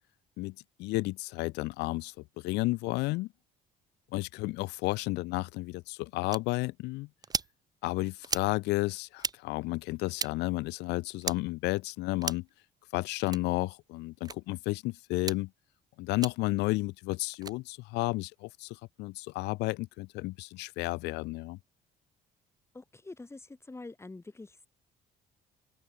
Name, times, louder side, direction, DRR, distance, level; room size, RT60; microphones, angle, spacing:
voice 1, 0.4-3.3 4.1-7.1 7.8-12.5 12.9-15.5 16.0-21.6, left 21 dB, 90° left, 0.7 m, -32 dB
sound 1, 6.3-6.4 7.2-7.5 8.2-8.5 9.2-9.4 10.2-10.3 11.2-11.4 12.2-12.5 13.2-13.4 14.2-14.4 15.2-15.4 16.2-16.3 17.3-17.6, right 5 dB, 25° right, 0.6 m, -34 dB
voice 2, 22.7-24.7, left 3 dB, 15° left, 4.1 m, -46 dB
open air
cardioid pair, 110°, 17 cm